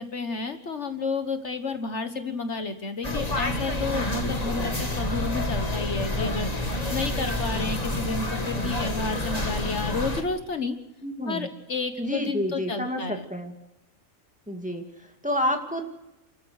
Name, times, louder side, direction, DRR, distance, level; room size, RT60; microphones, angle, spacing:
voice 1, 0.0-10.8 11.3-13.3, left 4 dB, 55° left, 8 dB, 1.6 m, -31 dB
sound 1, 3.0-10.2, left 1 dB, 30° left, 2.2 m, -28 dB
voice 2, 11.0-11.5 12.0-13.5 14.5-15.8, equal, 5° right, 3 dB, 2.2 m, -29 dB
29.5 x 13.5 x 6.4 m, 0.97 s
omnidirectional pair, 1.4 m